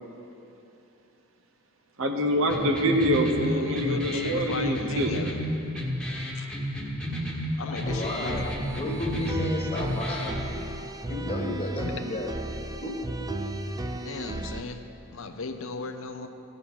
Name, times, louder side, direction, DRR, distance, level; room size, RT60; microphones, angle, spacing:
voice 1, 2.0-5.2, equal, 70° right, 3 dB, 1.1 m, -25 dB
sound 1, 2.5-10.5, equal, 5° left, 1.3 m, -32 dB
voice 2, 3.4-5.3 6.3-6.5 7.5-8.7 11.8-12.0 14.0-14.8 15.1-16.3, left 4 dB, 70° left, 7 dB, 0.7 m, -36 dB
voice 3, 7.7-8.4 8.7-10.6 11.1-12.3 12.8-12.9 13.3-13.4, left 2 dB, 30° left, 0 dB, 1.4 m, -33 dB
sound 2, 7.9-14.6, right 2 dB, 15° right, 0.4 m, -34 dB
16.0 x 6.7 x 5.6 m, 2.9 s
head